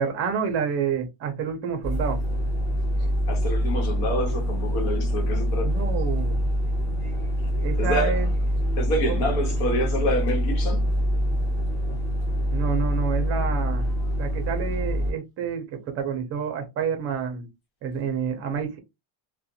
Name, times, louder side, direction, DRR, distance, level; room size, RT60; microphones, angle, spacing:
voice 1, 0.0-2.2 5.6-6.4 7.6-8.3 9.1-9.3 12.5-13.9 14.2-17.5 17.8-18.8, right 6 dB, 30° right, 0.6 m, -28 dB
sound 1, 1.8-15.1, equal, 5° left, 1.0 m, -25 dB
voice 2, 3.0-5.7 7.8-8.2 8.8-10.9, equal, 55° left, 1.2 m, -27 dB
2.4 x 2.2 x 2.7 m
cardioid pair, 175°, 47 cm